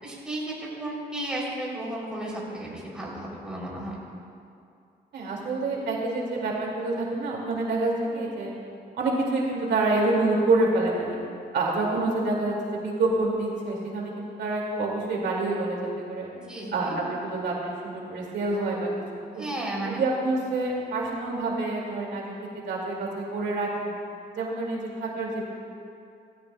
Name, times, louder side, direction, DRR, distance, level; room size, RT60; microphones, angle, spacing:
voice 1, 0.0-4.0 16.3-17.0 19.4-20.0, right 1 dB, 5° right, -6 dB, 3.2 m, -34 dB
voice 2, 5.1-8.5 9.0-11.2 11.5-16.3 16.7-18.9 19.2-19.4 19.9-24.0 24.3-25.5, right 2 dB, 85° right, -2 dB, 2.2 m, -27 dB
16.0 x 16.0 x 2.3 m, 2.5 s
cardioid pair, 140°, 18 cm